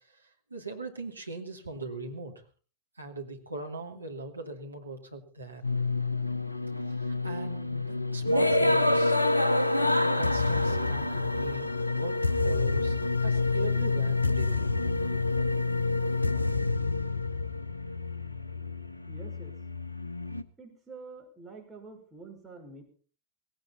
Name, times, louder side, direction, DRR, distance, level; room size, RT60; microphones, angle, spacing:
voice 1, 0.5-2.3 3.0-5.6 6.8-9.2 9.8-12.9 13.2-14.5, right 3 dB, 80° right, 3 dB, 2.6 m, -40 dB
sound 1, 5.6-20.4, left 2 dB, 85° left, 0.8 m, -27 dB
voice 2, 19.1-19.5 20.6-22.8, right 4 dB, 10° right, 0 dB, 5.8 m, -47 dB
18.0 x 17.0 x 4.2 m, 0.38 s
figure-of-eight pair, 90°, 0 cm